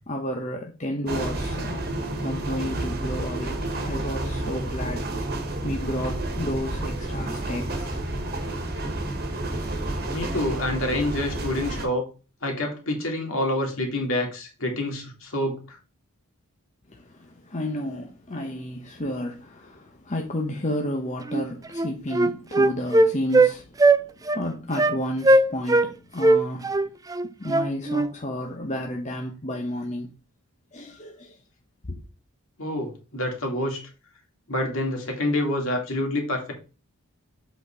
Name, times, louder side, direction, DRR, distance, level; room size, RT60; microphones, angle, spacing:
voice 1, 0.1-1.9 2.2-5.0 5.6-8.0 16.9-23.7 23.9-24.0 24.3-26.8 27.4-30.1 30.7-31.4 31.9-32.0, equal, 30° left, 0.9 m, -32 dB
sound 1, 1.1-11.9, right 1 dB, 45° right, 1.5 m, -30 dB
voice 2, 10.1-12.0 12.4-15.6 32.6-33.8 34.5-36.5, left 1 dB, 65° left, 2.4 m, -27 dB
Wind instrument woodwind instrument, 21.3-21.4 21.7-23.5 23.8-24.0 24.3-24.4 24.8-25.0 25.2-25.9 26.2-28.1, right 2 dB, 15° right, 0.3 m, -19 dB
8.0 x 4.1 x 4.4 m
head